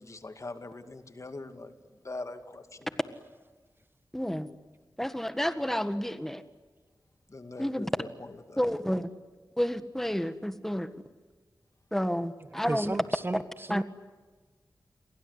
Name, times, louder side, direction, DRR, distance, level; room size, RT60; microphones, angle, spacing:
voice 1, 0.0-2.9 7.3-8.6, left 2 dB, 45° left, 8 dB, 2.4 m, -42 dB
voice 2, 4.1-4.5 5.0-6.4 7.6-7.9 8.6-9.1 9.6-10.9 11.9-13.0 13.7-13.8, equal, 5° left, 10 dB, 1.6 m, -30 dB
voice 3, 12.7-13.4 13.7-13.8, right 2 dB, 30° right, 13 dB, 1.1 m, -33 dB
29.5 x 23.5 x 8.3 m, 1.4 s
wide cardioid pair, 70°, 7 cm